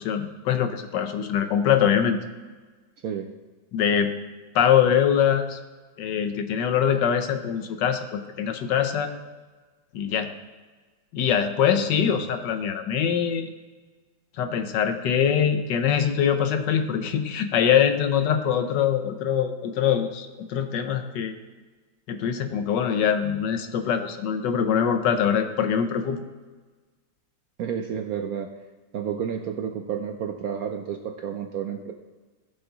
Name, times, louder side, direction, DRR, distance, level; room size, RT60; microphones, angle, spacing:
voice 1, 0.0-2.2 3.7-4.1 4.5-5.6 6.0-9.1 9.9-10.3 11.1-13.5 14.4-21.3 22.1-26.2, left 8 dB, 70° left, 8 dB, 1.4 m, -23 dB
voice 2, 27.6-28.5 28.9-31.9, right 8 dB, 65° right, 4 dB, 0.9 m, -30 dB
16.5 x 5.9 x 4.0 m, 1.3 s
omnidirectional pair, 2.1 m